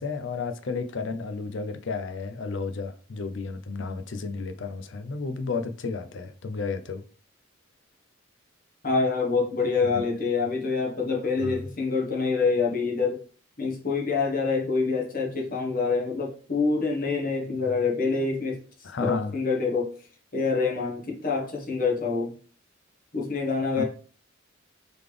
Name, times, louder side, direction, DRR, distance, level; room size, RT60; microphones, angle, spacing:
voice 1, 0.0-7.0 9.9-10.0 11.4-11.6 17.6-17.7 18.8-19.4 23.8-23.9, left 4 dB, 60° left, 0.5 m, -32 dB
voice 2, 8.8-13.2 13.6-18.6 19.0-20.0 20.3-22.3 23.1-23.8, left 4 dB, 45° left, 1.1 m, -26 dB
3.9 x 3.3 x 3.3 m
head